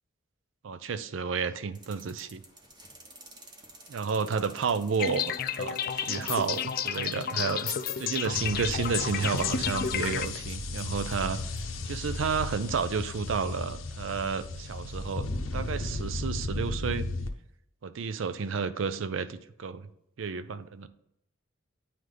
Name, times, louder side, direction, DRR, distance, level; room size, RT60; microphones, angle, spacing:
voice 1, 0.6-2.4 3.9-11.4 11.8-17.1 17.8-19.9 20.2-20.9, right 5 dB, 70° right, 13 dB, 0.4 m, -31 dB
sound 1, 1.7-11.7, right 2 dB, 20° right, 1.0 m, -53 dB
sound 2, 5.0-10.3, left 8 dB, 45° left, 0.3 m, -31 dB
sound 3, 8.3-17.3, left 2 dB, 85° left, 0.7 m, -35 dB
9.2 x 3.2 x 3.8 m, 0.78 s
head